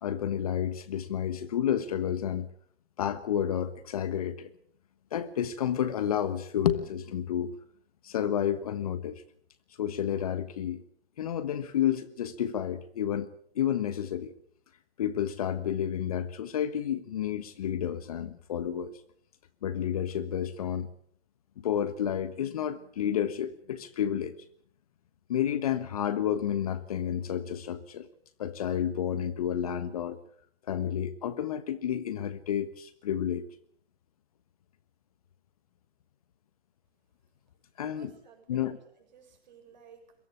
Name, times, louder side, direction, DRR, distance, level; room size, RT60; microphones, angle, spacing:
voice 1, 0.0-2.5 3.0-4.5 5.1-7.6 8.0-9.2 9.8-10.8 11.2-13.3 13.5-14.3 15.0-19.0 19.6-20.9 21.6-24.4 25.3-28.1 28.4-30.2 30.7-33.4 37.8-38.1 38.5-38.8, left 9 dB, 35° left, 1.3 m, -30 dB
voice 2, 37.8-40.2, right 6 dB, 40° right, 7.3 m, -56 dB
23.0 x 17.5 x 8.5 m
figure-of-eight pair, 145°, 33 cm